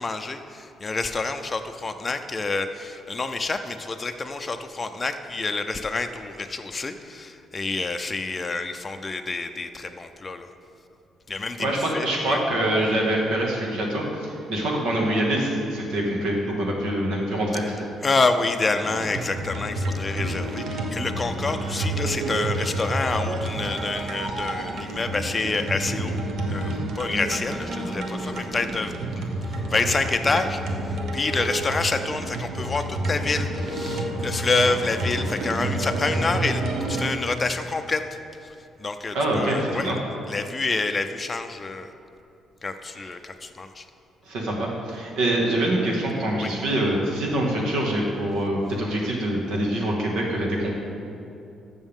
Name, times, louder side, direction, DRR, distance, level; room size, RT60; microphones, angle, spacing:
voice 1, 0.0-10.5 11.3-11.7 11.9-12.4 18.0-26.2 26.5-29.3 29.7-38.2 38.8-39.9 40.3-41.9 42.6-43.9 46.4-46.5, left 3 dB, 25° left, 6 dB, 0.4 m, -28 dB
voice 2, 11.6-17.8 39.1-40.0 44.3-50.7, right 1 dB, 85° right, -1 dB, 1.8 m, -25 dB
sound 1, 18.8-37.1, right 1 dB, 60° right, 1.0 m, -29 dB
14.0 x 6.4 x 3.6 m, 2.6 s
cardioid pair, 120°, 0 cm